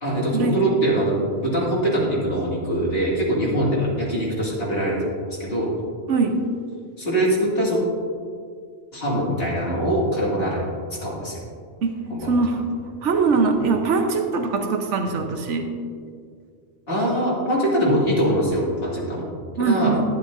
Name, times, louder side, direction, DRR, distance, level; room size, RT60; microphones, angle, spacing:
voice 1, 0.0-5.7 7.0-7.8 8.9-10.6 11.0-11.4 12.1-12.3 16.9-19.3 19.7-19.9, right 1 dB, 55° left, -6 dB, 2.5 m, -23 dB
voice 2, 6.1-6.5 11.8-12.7 13.0-15.7 19.6-20.0, right 4 dB, 75° right, 5 dB, 1.1 m, -22 dB
12.0 x 9.7 x 2.6 m, 2.1 s
omnidirectional pair, 1.2 m